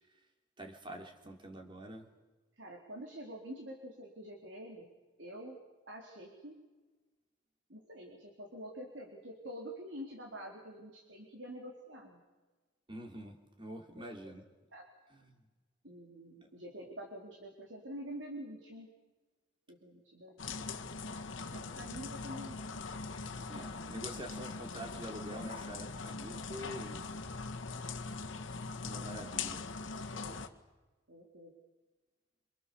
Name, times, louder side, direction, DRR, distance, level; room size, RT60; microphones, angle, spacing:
voice 1, 0.6-2.0 12.9-14.4 23.5-27.0 28.8-29.6, right 1 dB, 25° right, 3 dB, 3.4 m, -46 dB
voice 2, 2.6-4.9 5.2-5.6 5.9-6.6 7.7-12.2 13.9-14.1 14.7-14.8 15.8-18.9 19.7-20.7 21.5-22.8 30.1-30.5 31.1-31.5, equal, 70° right, 1 dB, 4.2 m, -47 dB
sound 1, 20.4-30.5, left 4 dB, 80° left, 1.8 m, -41 dB
27.5 x 26.0 x 7.2 m, 1.3 s
head